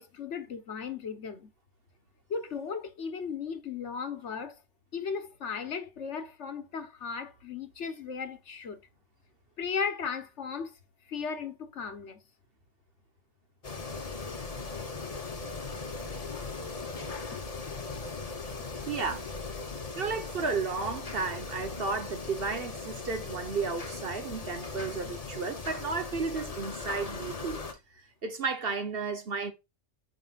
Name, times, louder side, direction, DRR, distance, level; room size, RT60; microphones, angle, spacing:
voice 1, 0.0-1.5 2.3-4.6 4.9-8.8 9.6-10.8 11.1-12.2 16.3-16.8 20.0-20.1, left 6 dB, 60° left, 1.4 m, -36 dB
sound 1, 13.6-27.7, left 3 dB, 30° left, 1.1 m, -39 dB
voice 2, 18.9-19.2 20.0-27.6 28.2-29.5, right 4 dB, 50° right, 1.2 m, -33 dB
9.5 x 4.9 x 2.5 m
omnidirectional pair, 1.3 m